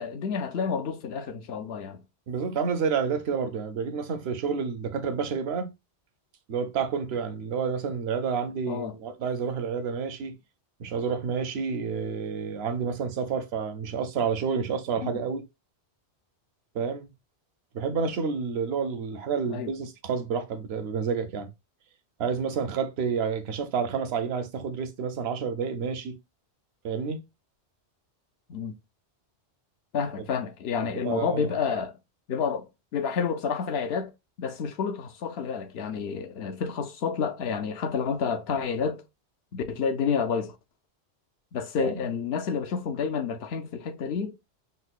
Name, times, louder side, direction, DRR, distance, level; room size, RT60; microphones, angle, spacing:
voice 1, 0.0-2.0 8.7-8.9 15.0-15.1 19.5-19.7 28.5-28.7 29.9-32.0 32.3-32.7 32.9-34.1 34.4-39.0 39.5-40.6 41.5-44.3, left 6 dB, 70° left, 0.8 m, -29 dB
voice 2, 2.3-5.7 6.5-10.4 10.8-15.4 16.7-17.1 17.7-21.5 22.2-26.2 26.8-27.2 30.9-31.5 41.8-42.0, right 6 dB, 75° right, 0.8 m, -29 dB
5.4 x 2.1 x 2.3 m
omnidirectional pair, 1.1 m